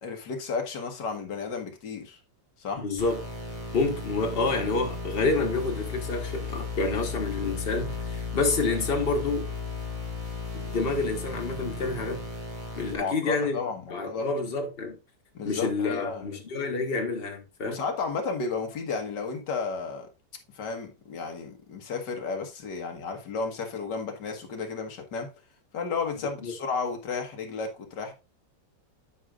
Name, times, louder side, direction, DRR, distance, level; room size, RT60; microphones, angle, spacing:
voice 1, 0.0-2.2 2.6-2.9 13.0-14.3 15.3-16.3 17.7-20.1 20.5-25.3 25.7-28.1, left 4 dB, 65° left, 2.0 m, -33 dB
voice 2, 2.8-3.2 3.7-9.5 10.5-12.2 12.8-13.6 13.9-15.0 15.4-17.8 26.4-26.5, left 3 dB, 35° left, 1.3 m, -28 dB
sound 1, 3.0-13.0, left 4 dB, 20° right, 2.0 m, -35 dB
11.5 x 4.9 x 2.4 m
omnidirectional pair, 2.1 m